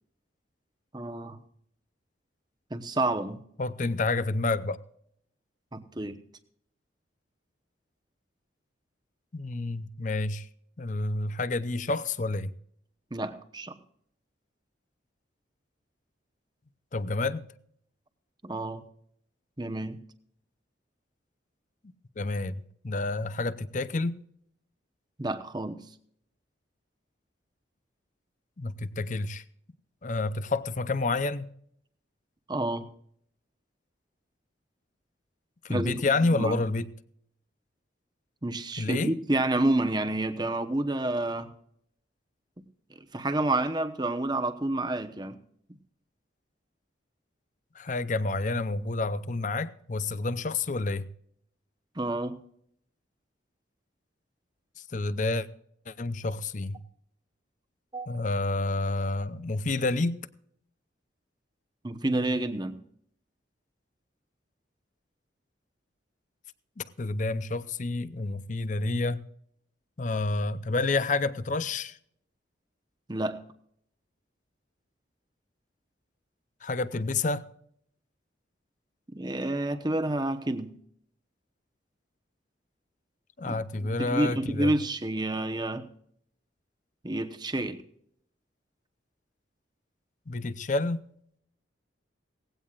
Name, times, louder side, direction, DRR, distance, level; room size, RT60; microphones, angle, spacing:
voice 1, 0.9-1.4 2.7-3.4 5.7-6.2 13.1-13.8 18.4-18.8 19.6-20.0 25.2-25.8 32.5-32.9 35.7-36.6 38.4-41.5 43.1-45.4 51.9-52.4 57.9-58.1 61.8-62.8 73.1-73.4 79.1-80.7 83.5-83.6 83.8-85.9 87.0-87.8, right 2 dB, 20° right, 0.9 m, -29 dB
voice 2, 3.6-4.8 9.3-10.5 10.8-12.5 16.9-17.4 22.2-24.2 28.6-29.4 30.0-31.5 35.6-36.9 38.8-39.1 47.8-51.1 54.9-55.5 55.9-56.8 58.1-60.2 66.8-69.2 70.0-72.0 76.6-77.5 83.4-84.8 90.3-91.1, left 3 dB, 40° left, 0.6 m, -29 dB
18.0 x 16.0 x 2.4 m
head